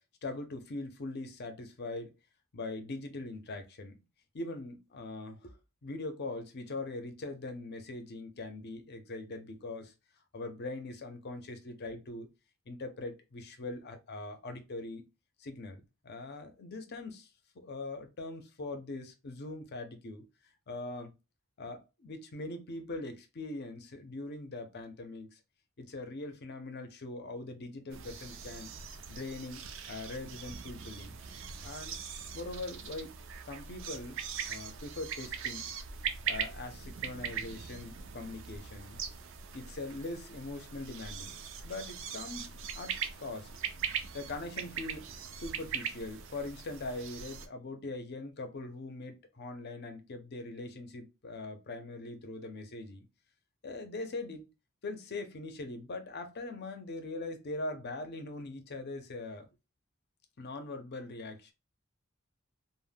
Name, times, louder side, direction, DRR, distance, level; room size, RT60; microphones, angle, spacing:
voice 1, 0.2-2.1 2.5-4.0 4.3-5.6 5.8-9.9 10.3-12.3 12.7-15.1 15.4-17.3 17.6-20.2 20.7-21.1 21.6-25.4 25.8-28.7 29.1-29.6 29.9-31.2 31.6-32.0 32.3-33.1 33.4-34.2 34.5-35.7 36.3-39.0 39.5-41.3 41.6-43.5 44.1-45.1 45.4-53.1 53.6-54.5 54.8-59.5 60.4-61.5, left 2 dB, 55° left, 0.6 m, -41 dB
sound 1, 27.9-47.5, right 7 dB, 65° right, 0.4 m, -41 dB
2.2 x 2.1 x 3.3 m
head